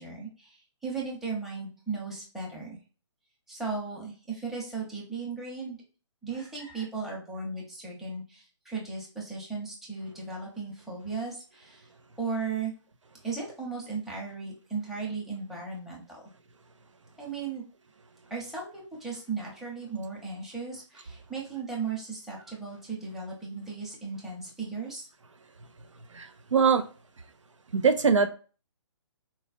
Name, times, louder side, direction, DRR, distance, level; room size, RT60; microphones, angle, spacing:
voice 1, 0.0-2.8 3.5-5.8 6.2-11.9 12.2-12.7 13.2-16.2 17.2-17.6 18.3-25.1, right 4 dB, ahead, -4 dB, 0.8 m, -36 dB
voice 2, 26.1-26.9 27.7-28.3, right 5 dB, 80° right, 8 dB, 0.5 m, -22 dB
4.0 x 2.3 x 2.4 m, 0.36 s
figure-of-eight pair, 140°, 16 cm